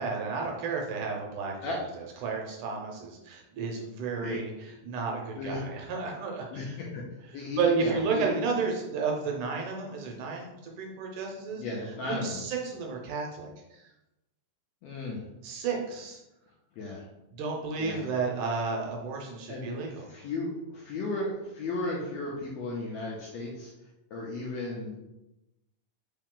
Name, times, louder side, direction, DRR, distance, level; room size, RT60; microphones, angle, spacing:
voice 1, 0.0-1.8 2.2-6.8 7.6-11.6 12.0-13.5 15.4-16.2 17.3-20.1, right 4 dB, 75° right, 0 dB, 2.0 m, -32 dB
voice 2, 6.5-7.0 7.3-8.3 11.6-12.5 14.8-15.2 16.8-17.0 17.8-18.1 19.5-23.7 24.1-24.9, left 2 dB, 75° left, -3 dB, 1.6 m, -35 dB
4.8 x 2.8 x 3.7 m, 0.95 s
omnidirectional pair, 3.7 m